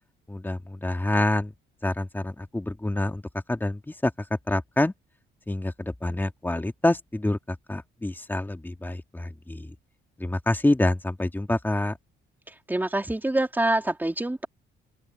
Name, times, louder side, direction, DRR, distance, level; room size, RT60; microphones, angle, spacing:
voice 1, 0.3-1.5 1.8-4.9 5.5-9.7 10.2-12.0, left 1 dB, 10° left, 2.4 m, -27 dB
voice 2, 12.7-14.5, right 1 dB, 10° right, 3.1 m, -25 dB
open air
cardioid pair, 90°, 20 cm